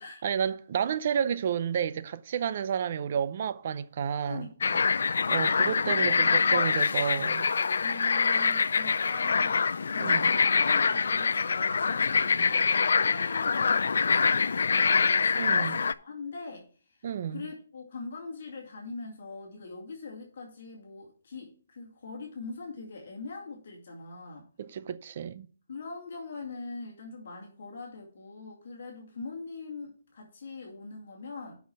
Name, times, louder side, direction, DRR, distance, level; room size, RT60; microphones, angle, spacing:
voice 1, 0.2-4.5 5.3-7.5 10.0-10.3 12.4-12.5 15.4-15.8 17.0-17.4 24.6-25.5, right 8 dB, 40° right, 0.5 m, -31 dB
voice 2, 4.2-4.9 5.8-6.3 7.8-24.5 25.7-31.6, left 3 dB, 50° left, 2.1 m, -42 dB
sound 1, 4.6-15.9, left 5 dB, 75° left, 0.4 m, -25 dB
6.3 x 5.8 x 7.0 m
hypercardioid pair, 170°, 0 cm